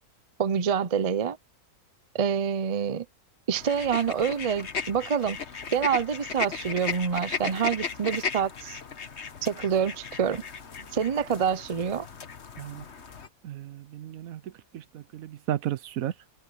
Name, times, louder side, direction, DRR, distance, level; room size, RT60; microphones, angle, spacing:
voice 1, 0.4-1.4 2.1-3.1 3.5-5.4 5.7-8.8 9.4-10.4 10.9-12.1, right 7 dB, 45° right, 0.4 m, -26 dB
sound 1, 3.5-13.3, left 5 dB, 45° left, 1.5 m, -36 dB
voice 2, 13.4-14.4 14.7-16.1, right 12 dB, 70° right, 1.0 m, -33 dB
omnidirectional pair, 1.6 m